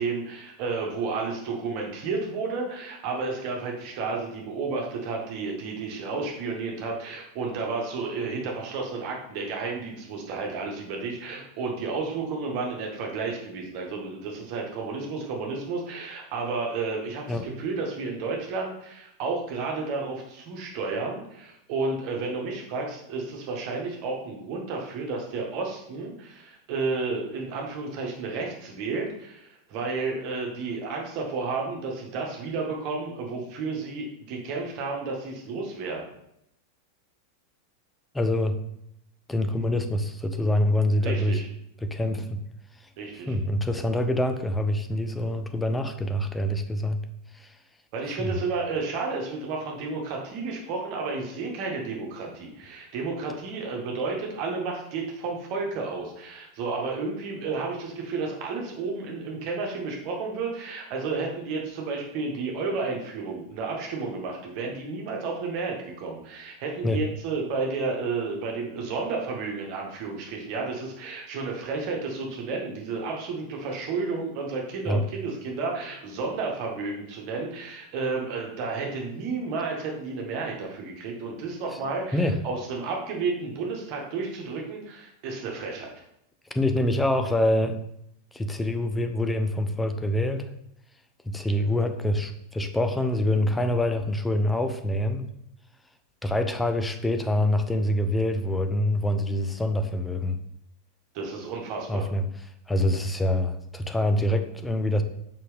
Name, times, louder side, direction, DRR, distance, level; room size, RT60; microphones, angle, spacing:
voice 1, 0.0-36.1 41.0-41.5 43.0-43.4 47.9-85.9 101.1-102.0, right 4 dB, 45° right, 0 dB, 1.9 m, -32 dB
voice 2, 38.1-38.6 39.3-41.4 41.8-42.3 43.3-47.0 47.3-47.5 48.2-48.4 66.8-67.0 74.9-75.0 82.1-82.4 86.5-87.8 88.3-90.5 91.2-95.3 96.2-100.4 101.9-102.3 102.7-105.0, left 1 dB, 10° left, 7 dB, 0.8 m, -25 dB
6.5 x 5.5 x 3.6 m, 0.77 s
figure-of-eight pair, 90°, 0 cm